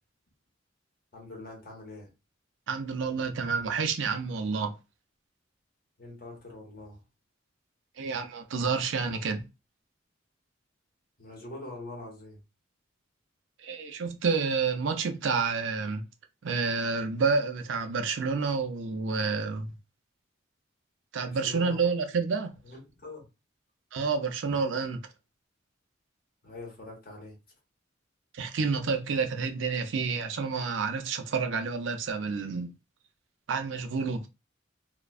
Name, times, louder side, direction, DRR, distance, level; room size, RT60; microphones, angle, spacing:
voice 1, 1.1-2.1 6.0-7.0 11.2-12.4 21.2-22.0 22.6-23.3 26.4-27.4, left 2 dB, 50° left, 1.0 m, -44 dB
voice 2, 2.7-4.8 8.0-9.4 13.6-16.0 16.4-19.7 21.1-22.5 23.9-25.0 28.3-32.7 33.5-34.3, right 5 dB, 70° right, 0.4 m, -29 dB
2.4 x 2.2 x 2.3 m
head